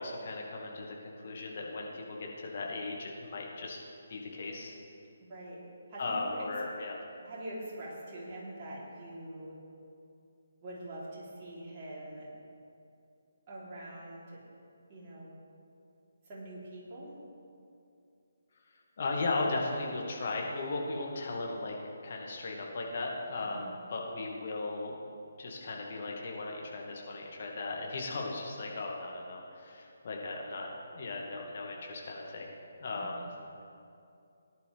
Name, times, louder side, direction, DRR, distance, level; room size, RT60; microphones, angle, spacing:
voice 1, 0.0-3.8 4.1-4.8 6.0-7.0 19.0-21.8 22.0-24.9 25.4-32.5 32.8-33.3, left 3 dB, 45° left, -1 dB, 1.9 m, -37 dB
voice 2, 5.3-5.6 5.9-6.5 7.2-9.6 10.6-12.3 13.5-14.4 14.9-15.4 16.3-17.2 23.5-23.7 32.9-33.3, right 1 dB, 30° right, -7 dB, 3.4 m, -44 dB
18.0 x 10.5 x 3.4 m, 2.6 s
figure-of-eight pair, 145°, 0 cm